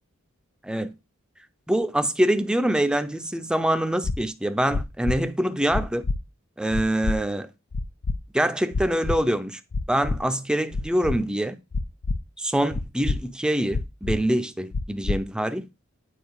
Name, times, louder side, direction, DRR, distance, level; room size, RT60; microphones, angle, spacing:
voice 1, 1.7-6.0 6.6-7.5 8.3-9.6 9.9-11.6 12.4-15.6, right 1 dB, 5° right, 0.5 m, -24 dB
sound 1, 4.0-4.2 4.7-5.2 5.7-6.2 6.7-7.2 7.7-8.2 8.7-9.2 9.7-10.2 10.7-11.2 11.7-12.2 12.7-13.2 13.7-14.2 14.7-15.2, left 3 dB, 55° left, 0.5 m, -26 dB
9.3 x 4.5 x 4.8 m
head